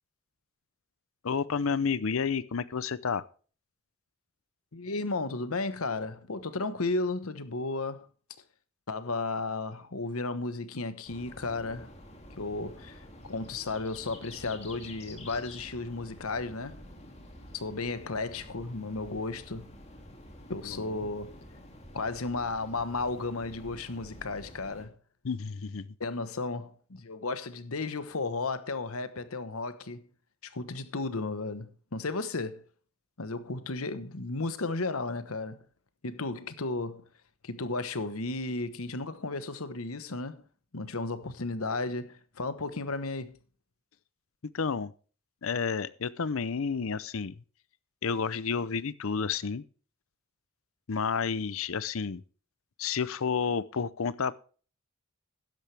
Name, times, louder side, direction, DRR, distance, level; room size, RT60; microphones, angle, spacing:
voice 1, 1.2-3.3 20.6-21.0 25.2-25.9 44.5-44.9 45.4-47.3 48.0-49.6 50.9-52.2 52.8-54.4, left 5 dB, 70° left, 0.6 m, -30 dB
voice 2, 4.7-8.1 8.9-11.9 12.4-16.8 17.5-19.7 20.5-21.4 21.9-24.9 26.0-30.1 30.4-32.6 33.2-35.6 36.0-37.0 37.4-40.4 40.7-43.4, left 3 dB, 90° left, 1.2 m, -34 dB
sound 1, 11.0-24.8, left 1 dB, 30° left, 2.4 m, -49 dB
13.0 x 10.5 x 3.4 m
head